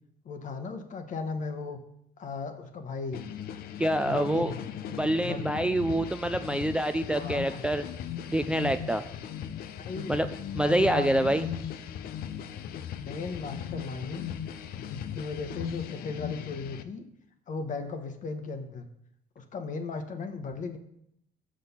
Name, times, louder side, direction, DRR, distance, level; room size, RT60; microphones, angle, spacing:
voice 1, 0.2-1.8 2.2-3.2 4.0-4.6 5.2-5.5 7.1-7.6 9.8-10.2 10.5-11.4 13.0-14.3 14.8-17.0 17.5-18.9 19.4-20.8, left 4 dB, 50° left, 7 dB, 1.1 m, -36 dB
sound 1, 3.1-16.8, left 9 dB, 65° left, 0.6 m, -38 dB
voice 2, 3.8-4.5 4.9-7.9 8.3-9.0 10.1-10.3 10.5-11.5, right 1 dB, 5° right, 9 dB, 0.3 m, -26 dB
6.4 x 6.2 x 5.6 m, 0.76 s
cardioid pair, 110°, 17 cm